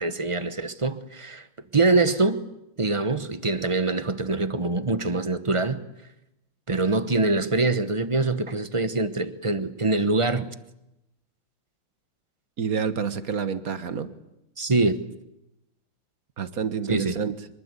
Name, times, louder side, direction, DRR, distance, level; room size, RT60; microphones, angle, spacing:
voice 1, 0.0-1.5 1.7-2.4 2.8-5.8 6.7-10.5 14.6-15.0 16.9-17.2, right 3 dB, 25° right, 0.7 m, -24 dB
voice 2, 12.6-14.1 16.4-17.4, right 6 dB, 50° right, 1.6 m, -28 dB
25.0 x 23.0 x 8.3 m
omnidirectional pair, 2.2 m